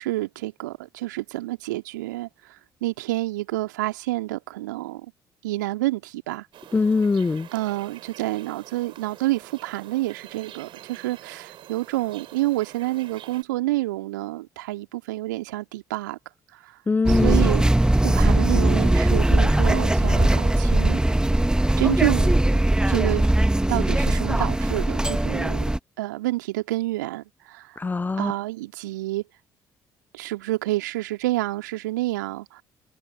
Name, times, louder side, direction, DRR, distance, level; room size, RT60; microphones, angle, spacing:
voice 1, 0.0-2.6 2.8-5.1 5.4-6.5 7.5-16.2 16.6-16.8 17.1-17.6 18.0-21.0 21.8-22.3 22.9-23.3 23.7-25.6 26.0-27.8 28.2-29.2 30.1-32.6, right 18 dB, 75° right, 2.5 m, -28 dB
sound 1, 6.5-13.4, right 12 dB, 55° right, 4.0 m, -46 dB
voice 2, 6.7-7.5 16.9-17.5 27.8-28.3, left 4 dB, 20° left, 0.4 m, -22 dB
sound 2, 17.1-25.8, right 1 dB, 10° right, 1.3 m, -20 dB
figure-of-eight pair, 45°, 10 cm